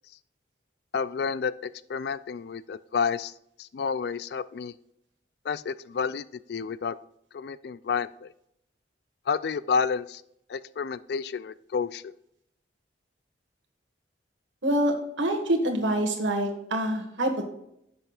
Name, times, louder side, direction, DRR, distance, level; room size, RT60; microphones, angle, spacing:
voice 1, 0.9-3.3 3.6-4.7 5.4-7.0 7.3-8.3 9.3-10.2 10.5-12.1, left 6 dB, 55° left, 17 dB, 0.3 m, -30 dB
voice 2, 14.6-17.4, right 1 dB, 85° right, 4 dB, 1.6 m, -26 dB
11.0 x 7.8 x 2.4 m, 0.76 s
head